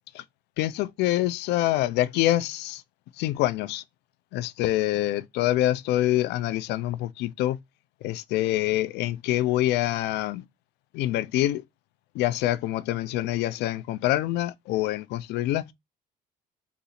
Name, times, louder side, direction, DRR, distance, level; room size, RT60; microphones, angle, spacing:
voice 1, 0.6-2.8 3.2-3.8 4.3-7.6 8.0-10.4 10.9-11.6 12.1-15.7, left 15 dB, 85° left, 0.4 m, -26 dB
3.9 x 2.4 x 4.1 m
cardioid pair, 110°, 17 cm